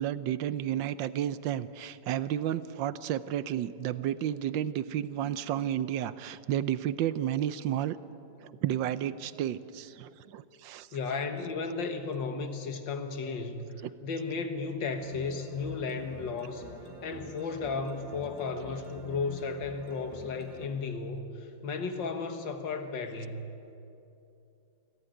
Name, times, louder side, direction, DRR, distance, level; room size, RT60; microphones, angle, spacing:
voice 1, 0.0-8.0 8.4-10.9 13.8-13.9, right 11 dB, 70° right, 15 dB, 1.3 m, -32 dB
voice 2, 10.9-16.7 17.0-23.4, left 4 dB, 65° left, 6 dB, 2.2 m, -34 dB
sound 1, 15.0-20.7, left 1 dB, 15° left, 3.5 m, -47 dB
24.0 x 15.5 x 9.1 m, 2.8 s
omnidirectional pair, 2.2 m